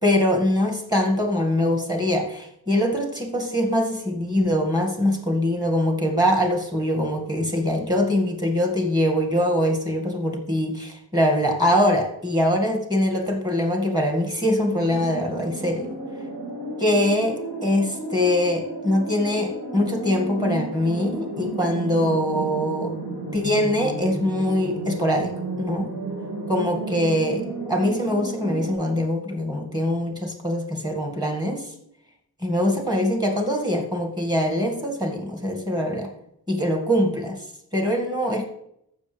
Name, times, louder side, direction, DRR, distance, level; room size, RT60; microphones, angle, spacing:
voice 1, 0.0-15.9 16.8-22.9 23.3-25.3 25.6-25.9 26.5-31.7 32.4-36.1 36.5-37.4 37.7-38.4, left 1 dB, 10° right, 1 dB, 2.0 m, -23 dB
sound 1, 14.7-28.7, right 2 dB, 70° right, 2.3 m, -33 dB
14.5 x 6.5 x 3.4 m, 0.77 s
wide cardioid pair, 100°, 39 cm